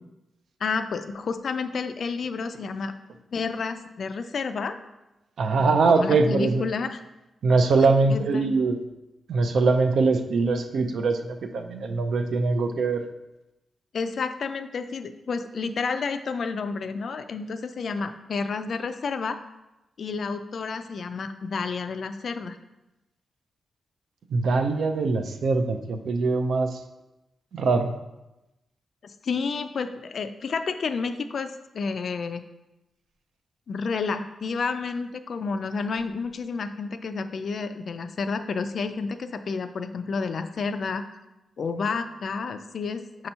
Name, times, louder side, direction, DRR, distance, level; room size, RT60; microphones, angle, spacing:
voice 1, 0.6-2.9 3.3-4.8 5.6-7.0 7.8-8.5 13.9-19.4 20.0-22.6 29.0-32.5 33.7-41.0 41.6-43.3, left 4 dB, 50° left, 9 dB, 0.3 m, -30 dB
voice 2, 5.4-6.7 7.4-8.8 9.3-13.0 24.3-26.8 27.5-27.9, right 3 dB, 65° right, 7 dB, 0.5 m, -22 dB
6.0 x 2.9 x 5.4 m, 0.97 s
wide cardioid pair, 165°, 0 cm